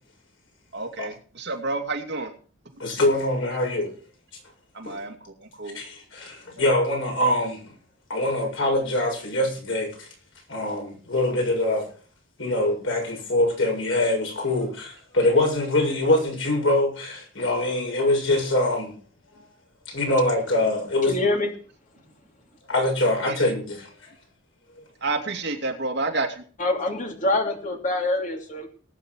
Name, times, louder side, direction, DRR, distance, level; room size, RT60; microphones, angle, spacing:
voice 1, 0.7-2.3 4.7-5.1 5.4-5.8 23.3-23.4 25.0-26.4, right 3 dB, 60° right, 2.8 m, -29 dB
voice 2, 2.8-3.9 4.8-5.0 5.7-7.6 8.1-10.1 10.5-11.8 12.4-18.9 19.9-21.1 22.7-23.9, left 1 dB, 80° left, 7.5 m, -24 dB
voice 3, 21.1-21.5 26.6-28.7, left 2 dB, 40° left, 2.9 m, -25 dB
19.0 x 9.2 x 4.8 m
head